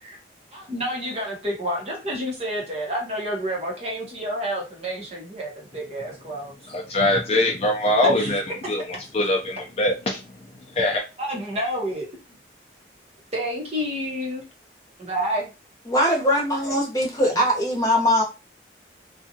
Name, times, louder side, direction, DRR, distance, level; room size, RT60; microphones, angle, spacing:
voice 1, 0.5-6.5 8.1-8.7 11.2-12.4 13.3-14.4 15.0-15.5, equal, 35° right, 0.9 m, -29 dB
voice 2, 6.7-10.2 10.7-11.0, left 1 dB, 35° left, 0.5 m, -23 dB
voice 3, 15.8-18.2, equal, 20° left, 1.0 m, -21 dB
2.6 x 2.3 x 2.7 m
head